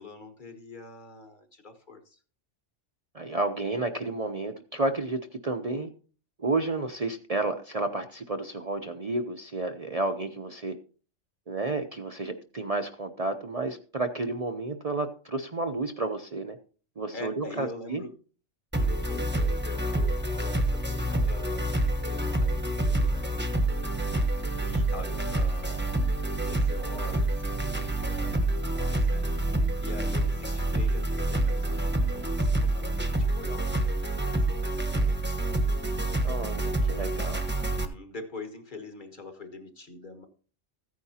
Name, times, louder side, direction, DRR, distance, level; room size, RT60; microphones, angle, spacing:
voice 1, 0.0-2.2 17.1-18.1 18.7-21.6 22.0-23.4 24.6-26.0 26.4-35.2 37.6-40.3, left 3 dB, 40° left, 6 dB, 1.7 m, -44 dB
voice 2, 3.1-5.9 6.4-10.7 11.5-16.6 17.0-18.0 36.2-37.5, right 2 dB, 35° right, 6 dB, 0.7 m, -31 dB
sound 1, 18.7-37.9, right 1 dB, 10° right, 1.0 m, -27 dB
15.0 x 9.5 x 2.8 m, 0.38 s
omnidirectional pair, 1.3 m